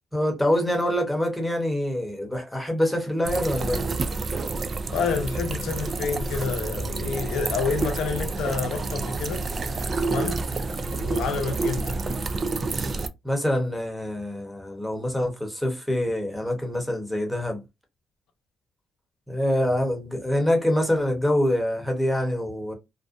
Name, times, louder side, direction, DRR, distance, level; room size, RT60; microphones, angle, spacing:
voice 1, 0.1-3.8 13.2-17.6 19.3-22.7, left 1 dB, 5° left, 0.9 m, -25 dB
sound 1, 3.2-13.1, right 3 dB, 40° right, 0.3 m, -29 dB
voice 2, 4.9-9.5 9.9-10.4 10.9-12.0, left 5 dB, 85° left, 0.6 m, -29 dB
2.5 x 2.1 x 2.4 m
cardioid pair, 90°, 0 cm